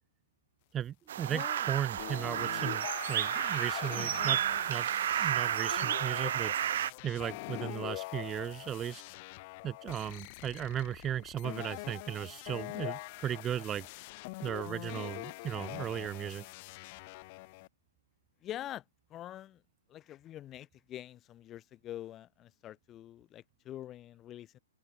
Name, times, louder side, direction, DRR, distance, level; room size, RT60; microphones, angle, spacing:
voice 1, 0.7-4.4 4.7-4.9 5.2-6.5 7.0-9.0 9.6-13.9 14.4-16.5, right 10 dB, 20° right, 2.2 m, -36 dB
sound 1, 1.1-6.9, right 10 dB, 60° right, 0.4 m, -32 dB
voice 2, 1.2-1.7 18.4-18.8 19.1-19.6 19.9-24.6, left 12 dB, 20° left, 1.7 m, -45 dB
sound 2, 2.0-17.7, left 25 dB, 40° left, 0.7 m, -44 dB
open air
hypercardioid pair, 140°, 0 cm